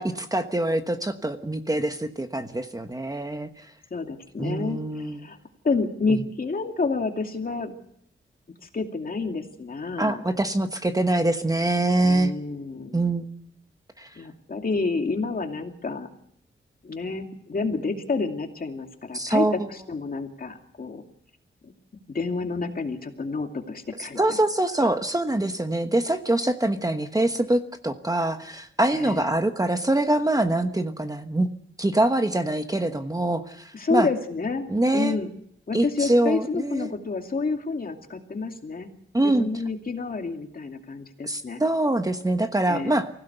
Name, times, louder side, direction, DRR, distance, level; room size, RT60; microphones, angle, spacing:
voice 1, 0.0-3.5 4.4-5.3 10.0-12.3 12.9-13.3 14.0-14.1 19.1-19.6 24.2-31.5 31.8-34.1 34.7-35.2 35.7-36.9 39.1-39.5 41.2-43.1, right 1 dB, 15° right, 7 dB, 1.2 m, -24 dB
voice 2, 3.9-5.4 5.6-7.7 8.7-10.2 12.0-13.0 14.2-16.1 16.8-21.0 21.6-21.7 22.1-24.4 24.8-24.9 28.9-29.3 33.7-34.7 34.9-35.3 35.7-38.9 39.2-41.6 42.7-43.0, left 4 dB, 45° left, 4 dB, 2.5 m, -29 dB
24.5 x 16.5 x 8.0 m, 0.70 s
wide cardioid pair, 135°, 20 cm